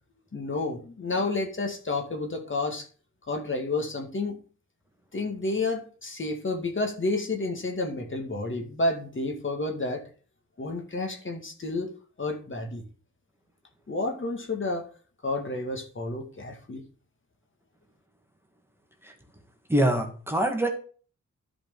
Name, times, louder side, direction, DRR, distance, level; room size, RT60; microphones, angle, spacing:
voice 1, 0.3-2.9 3.3-4.4 5.1-10.1 10.6-11.9 12.2-12.8 13.9-14.9 15.2-16.8, left 2 dB, 40° left, 3 dB, 2.2 m, -30 dB
voice 2, 19.7-20.7, right 1 dB, 10° right, 3 dB, 2.0 m, -24 dB
11.0 x 5.2 x 5.4 m, 0.40 s
cardioid pair, 75°, 30 cm